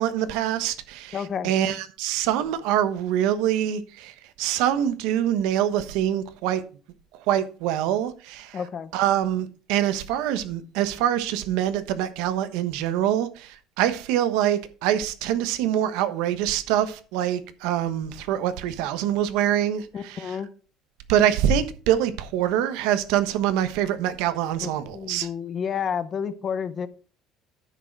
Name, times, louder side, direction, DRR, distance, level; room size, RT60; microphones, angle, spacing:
voice 1, 0.0-6.6 7.1-8.6 8.9-20.4 21.1-25.3, right 11 dB, 85° right, 1.1 m, -25 dB
voice 2, 1.1-1.5 8.5-8.9 19.9-20.5 24.6-26.9, left 7 dB, 30° left, 0.7 m, -30 dB
10.0 x 6.6 x 4.6 m
cardioid pair, 170°, 0 cm